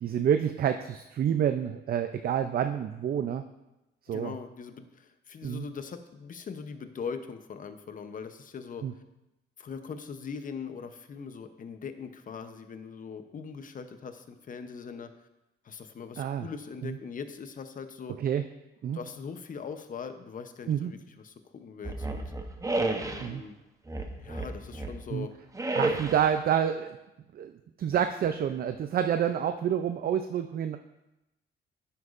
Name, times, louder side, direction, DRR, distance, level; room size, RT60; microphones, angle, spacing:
voice 1, 0.0-3.4 4.0-4.3 5.4-5.6 8.8-8.9 16.2-16.5 16.8-17.0 18.2-18.4 18.8-19.0 20.7-20.9 23.2-23.4 25.1-25.3 25.7-27.0 27.3-27.5 27.8-30.8, right 9 dB, 50° right, 8 dB, 0.4 m, -28 dB
voice 2, 4.1-8.8 9.6-15.3 15.6-18.2 18.9-22.3 23.0-23.6 24.2-25.3, left 6 dB, 45° left, 9 dB, 0.8 m, -41 dB
sound 1, 21.8-23.3 23.9-25.0 25.5-26.4, right 2 dB, 15° right, 0.8 m, -31 dB
10.0 x 8.0 x 2.5 m, 0.95 s
cardioid pair, 90°, 20 cm